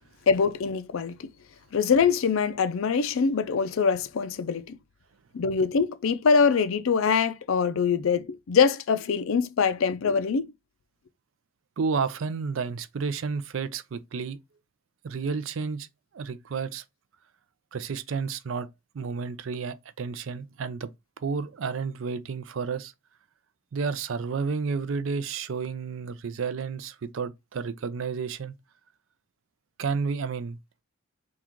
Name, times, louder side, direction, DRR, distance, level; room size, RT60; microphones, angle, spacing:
voice 1, 0.3-1.3 1.7-4.8 5.3-10.5, left 5 dB, 75° left, 0.4 m, -24 dB
voice 2, 11.8-14.4 15.0-15.9 16.1-16.8 17.7-18.7 18.9-20.9 21.2-22.9 23.7-28.5 29.8-30.6, right 5 dB, 70° right, 0.4 m, -31 dB
3.7 x 2.3 x 4.4 m
head